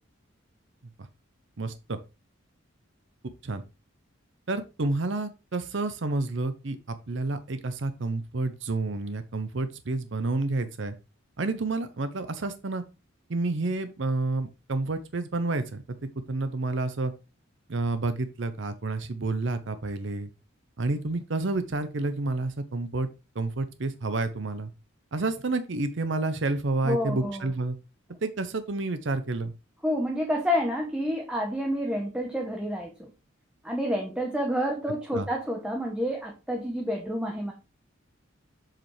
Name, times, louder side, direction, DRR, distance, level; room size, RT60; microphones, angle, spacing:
voice 1, 1.6-2.0 3.4-3.6 4.5-10.9 11.4-12.8 13.3-15.8 16.3-17.1 17.7-20.3 20.8-23.1 23.3-24.7 25.1-27.8 28.2-29.5 35.1-35.3, right 2 dB, 60° right, 11 dB, 0.7 m, -29 dB
voice 2, 26.8-27.5 29.8-33.1 33.6-37.5, equal, 5° right, 1 dB, 0.9 m, -29 dB
7.4 x 4.9 x 3.2 m, 0.28 s
head